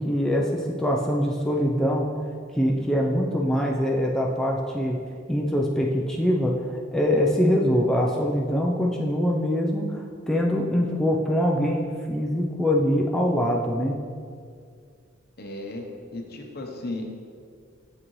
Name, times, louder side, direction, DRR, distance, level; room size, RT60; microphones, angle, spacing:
voice 1, 0.0-2.1 2.5-5.0 5.3-14.0, equal, 5° left, -2 dB, 0.4 m, -23 dB
voice 2, 15.4-15.8 16.1-17.1, left 2 dB, 50° left, 2 dB, 0.8 m, -34 dB
7.4 x 6.3 x 3.1 m, 2.1 s
head